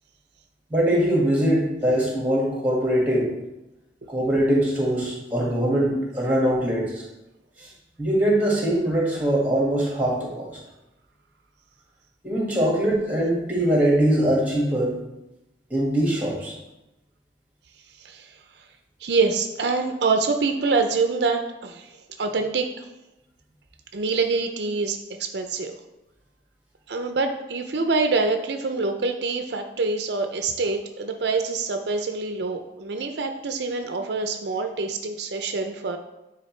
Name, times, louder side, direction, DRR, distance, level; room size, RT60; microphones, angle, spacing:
voice 1, 0.7-3.3 4.1-7.0 7.6-7.7 8.0-10.6 12.2-15.0 15.7-16.5, right 1 dB, 10° right, -4 dB, 1.8 m, -22 dB
voice 2, 18.0-18.4 19.0-22.9 23.9-25.8 26.9-36.0, right 4 dB, 70° right, 6 dB, 0.5 m, -25 dB
9.4 x 4.0 x 3.2 m, 0.96 s
head